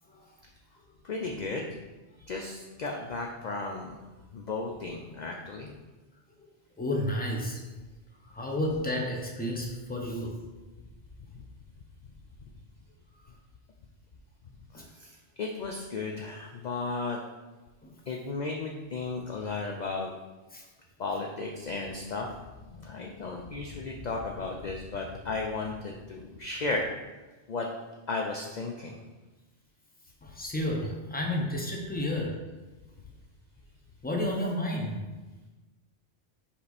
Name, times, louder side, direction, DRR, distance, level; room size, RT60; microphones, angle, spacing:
voice 1, 1.0-1.7 2.3-4.0 4.3-5.7 9.6-9.7 11.3-11.4 14.7-17.2 18.1-20.1 21.0-22.3 22.6-26.9 27.5-27.7 28.1-29.0, left 3 dB, 50° left, 1 dB, 0.6 m, -34 dB
voice 2, 6.8-7.6 8.2-10.4 14.7-14.8 17.8-17.9 20.5-20.6 30.2-32.4 34.0-35.0, left 1 dB, 10° left, 0 dB, 0.8 m, -31 dB
5.5 x 5.3 x 4.1 m, 1.2 s
omnidirectional pair, 1.2 m